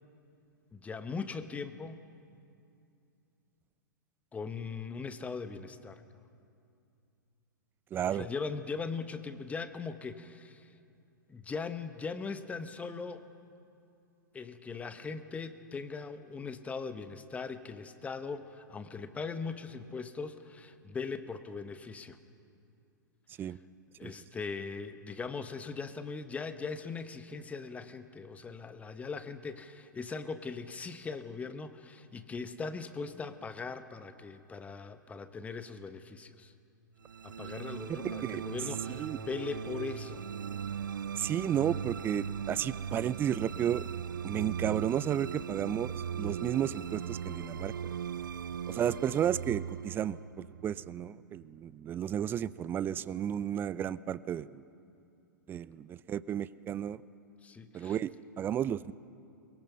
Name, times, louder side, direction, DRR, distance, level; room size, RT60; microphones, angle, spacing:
voice 1, 0.7-2.0 4.3-6.0 8.1-10.7 11.3-13.3 14.3-22.2 23.4-23.5 24.0-36.5 37.2-40.2 57.4-58.0, left 4 dB, 15° left, 11 dB, 1.0 m, -40 dB
voice 2, 7.9-8.3 23.4-23.6 24.0-24.1 38.2-38.4 39.0-39.2 41.2-43.8 44.2-47.7 48.7-54.6 55.5-57.0 57.7-58.1 58.4-58.9, right 10 dB, 20° right, 18 dB, 0.5 m, -33 dB
sound 1, 37.0-51.4, right 8 dB, 75° right, 0.5 m, -39 dB
22.0 x 22.0 x 5.7 m, 2.6 s
figure-of-eight pair, 110°, 11 cm